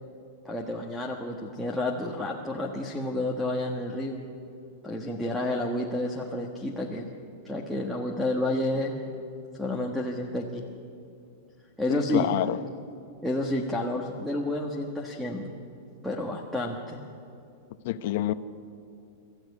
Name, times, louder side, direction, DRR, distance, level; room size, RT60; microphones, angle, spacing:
voice 1, 0.4-4.2 4.8-7.1 7.4-9.0 9.6-10.6 11.8-12.3 13.2-15.6 16.0-17.0, left 1 dB, ahead, 1 dB, 1.4 m, -30 dB
voice 2, 11.9-12.6 17.8-18.3, left 13 dB, 55° left, 11 dB, 1.0 m, -27 dB
27.5 x 14.5 x 9.6 m, 2.6 s
supercardioid pair, 165°, 0 cm